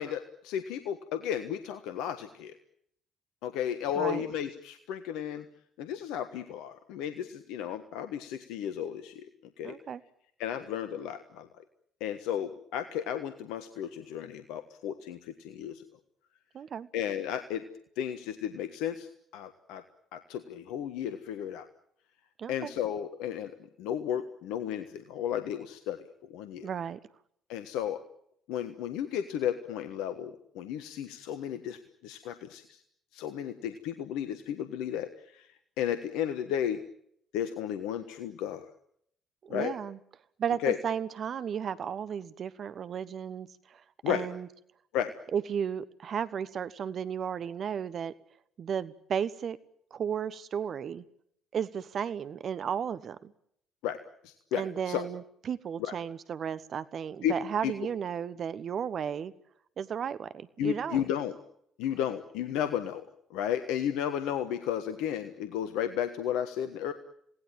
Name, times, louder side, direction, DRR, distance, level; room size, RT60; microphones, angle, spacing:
voice 1, 0.0-2.5 3.4-5.5 5.8-9.3 9.6-9.7 10.4-11.5 12.0-15.8 16.9-17.6 18.0-19.1 19.3-19.8 20.1-21.6 22.5-23.5 23.8-26.0 26.3-26.7 27.5-28.0 28.5-32.8 33.1-35.5 35.8-36.8 37.3-38.7 39.5-39.7 40.6-40.8 44.0-44.3 44.9-45.1 53.8-55.1 55.8-55.9 57.2-57.3 57.6-57.7 60.6-61.3 61.8-66.9, left 10 dB, 70° left, 9 dB, 1.4 m, -33 dB
voice 2, 9.6-10.0 16.5-16.9 22.4-22.7 26.6-27.0 39.4-40.0 40.4-44.5 45.3-48.1 48.6-49.6 49.9-51.0 51.5-53.3 54.6-59.3 59.8-61.0, right 8 dB, 50° right, 15 dB, 1.2 m, -34 dB
27.5 x 18.5 x 9.1 m, 0.72 s
hypercardioid pair, 50°, 0 cm